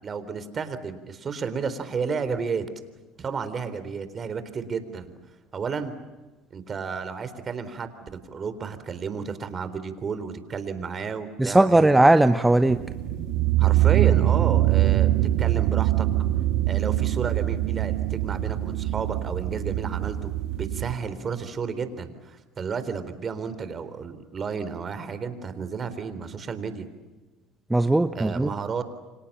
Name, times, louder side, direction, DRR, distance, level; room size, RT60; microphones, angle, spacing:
voice 1, 0.0-2.6 3.2-5.1 5.5-6.0 6.5-11.9 13.6-15.1 15.4-16.1 16.7-20.3 20.6-26.9 28.2-28.8, right 5 dB, 35° right, 11 dB, 3.9 m, -32 dB
voice 2, 11.4-12.8 27.7-28.5, right 2 dB, 10° right, 10 dB, 1.0 m, -18 dB
sound 1, 12.7-20.9, right 14 dB, 75° right, 2.8 m, -23 dB
30.0 x 25.5 x 7.4 m, 1.2 s
supercardioid pair, 95°, 0 cm